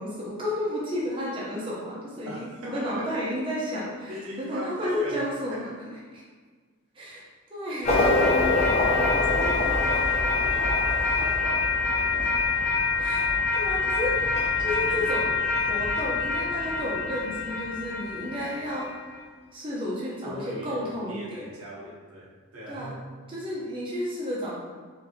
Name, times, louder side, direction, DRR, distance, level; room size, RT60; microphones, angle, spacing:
voice 1, 0.0-5.9 6.1-6.2 6.9-7.2 7.5-8.1 12.2-12.3 13.0-14.2 14.6-18.9 19.5-21.5 22.7-22.9 23.3-24.6, equal, 25° right, -6 dB, 0.6 m, -32 dB
voice 2, 2.3-3.2 4.0-5.8 9.1-12.4 20.2-20.8 21.1-23.0, right 1 dB, 75° right, -3 dB, 0.8 m, -39 dB
sound 1, 7.8-19.0, left 3 dB, 30° left, 0.7 m, -25 dB
4.7 x 2.7 x 2.7 m, 1.5 s
head